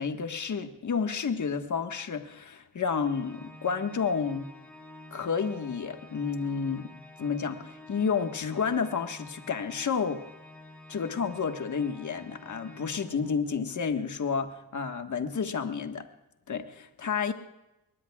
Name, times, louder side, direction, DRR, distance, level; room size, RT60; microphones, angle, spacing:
voice 1, 0.0-4.5 5.1-6.9 7.2-10.2 10.9-16.0 16.5-17.3, left 6 dB, 50° left, 6 dB, 1.6 m, -30 dB
Organ, 3.0-13.6, left 1 dB, 5° left, 4.4 m, -50 dB
23.0 x 19.5 x 2.4 m, 0.93 s
cardioid pair, 80°, 38 cm